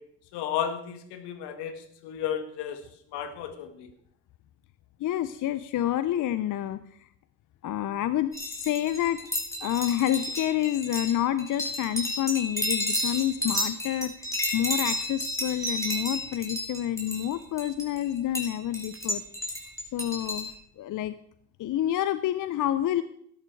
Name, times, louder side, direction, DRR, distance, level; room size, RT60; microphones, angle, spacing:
voice 1, 0.3-2.8 3.1-3.9, left 9 dB, 70° left, 8 dB, 1.7 m, -33 dB
voice 2, 5.0-6.8 7.6-9.2 9.6-19.2 19.9-20.5 20.8-21.1 21.6-23.0, left 12 dB, 50° left, 14 dB, 0.7 m, -28 dB
sound 1, 8.3-20.5, left 1 dB, 5° left, 4.0 m, -32 dB
13.5 x 11.0 x 4.6 m, 0.69 s
hypercardioid pair, 65°, 41 cm